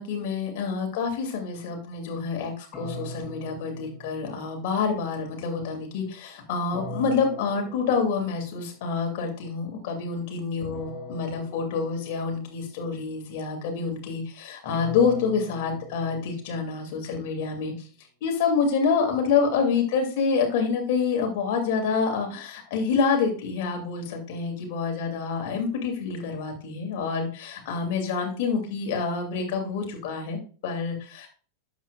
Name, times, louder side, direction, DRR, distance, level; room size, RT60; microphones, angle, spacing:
voice 1, 0.0-2.5 2.8-17.7 18.2-31.3, left 5 dB, 55° left, 2 dB, 2.7 m, -27 dB
sound 1, 2.7-4.8 6.7-8.6 10.7-12.6 14.7-16.9, equal, 20° left, 5.5 m, -41 dB
12.0 x 8.3 x 2.5 m, 0.38 s
figure-of-eight pair, 90°, 0 cm